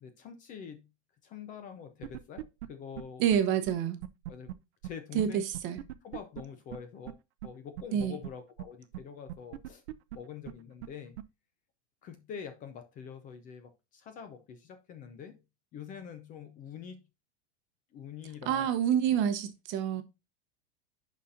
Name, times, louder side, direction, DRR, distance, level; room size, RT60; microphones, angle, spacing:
voice 1, 0.0-0.9 1.2-3.3 4.3-4.5 4.8-5.6 6.0-9.8 10.1-11.2 12.0-15.4 15.7-17.0 17.9-18.7, left 7 dB, 25° left, 0.5 m, -45 dB
sound 1, 2.0-2.7 3.0-3.1 3.3-3.4 3.7-3.8 4.0-4.5 4.8-4.9 5.2-5.3 5.5-6.4 6.7-6.8 7.1-7.2 7.4-7.5 7.8-8.3 8.6-8.7 8.9-9.0 9.3-10.2 10.5-10.6 10.8-10.9 11.2-11.3, right 13 dB, 70° right, 0.6 m, -39 dB
voice 2, 3.2-4.0 5.1-5.8 7.9-8.2 18.5-20.0, right 9 dB, 35° right, 0.8 m, -28 dB
11.0 x 4.2 x 2.5 m
supercardioid pair, 160°, 34 cm